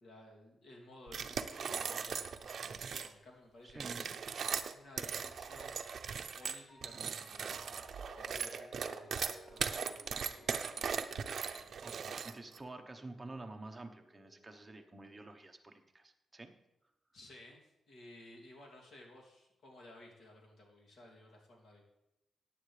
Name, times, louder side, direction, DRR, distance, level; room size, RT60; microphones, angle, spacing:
voice 1, 0.0-4.0 4.7-5.8 6.4-9.2 9.5-11.0 17.1-21.8, left 1 dB, 65° left, -1 dB, 2.7 m, -56 dB
sound 1, 1.1-3.1 3.7-12.6, right 6 dB, 55° right, 0.6 m, -39 dB
voice 2, 3.6-4.1 11.8-16.5, right 2 dB, 15° right, 4 dB, 1.0 m, -49 dB
Piano, 5.8-15.3, left 1 dB, 85° left, 4.7 m, -61 dB
14.5 x 9.4 x 3.3 m, 0.92 s
wide cardioid pair, 125°, 0 cm